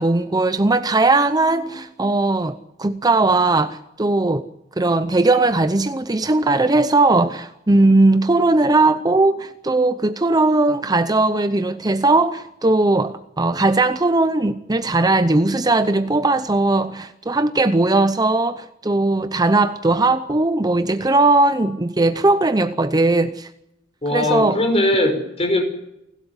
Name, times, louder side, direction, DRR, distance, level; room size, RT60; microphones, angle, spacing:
voice 1, 0.0-4.5 4.8-23.5 24.1-24.6, right 2 dB, 20° right, 0.7 m, -18 dB
voice 2, 24.0-25.6, left 1 dB, 30° left, 5.4 m, -20 dB
29.0 x 12.5 x 9.7 m
head